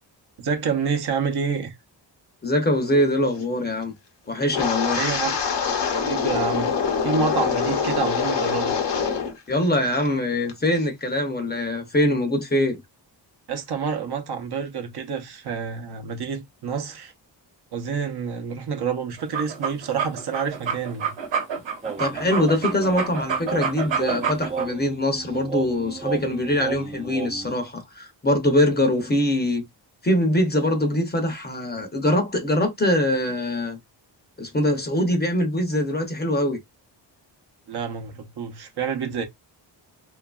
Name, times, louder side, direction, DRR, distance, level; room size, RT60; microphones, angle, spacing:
voice 1, 0.4-1.7 5.0-5.4 6.0-8.8 13.5-17.1 17.7-21.1 37.7-39.3, right 6 dB, 60° right, 0.7 m, -28 dB
voice 2, 2.4-3.9 4.3-5.0 9.5-12.8 22.0-29.6 30.0-33.8 34.4-36.6, left 1 dB, 25° left, 0.6 m, -23 dB
Wind, 4.5-9.4 9.6-10.1 10.5-10.8, left 6 dB, 65° left, 0.8 m, -24 dB
sound 1, 19.2-24.7, right 6 dB, 80° right, 1.0 m, -28 dB
sound 2, 21.8-27.5, right 5 dB, 15° right, 0.3 m, -33 dB
2.7 x 2.4 x 2.3 m
wide cardioid pair, 125°, 44 cm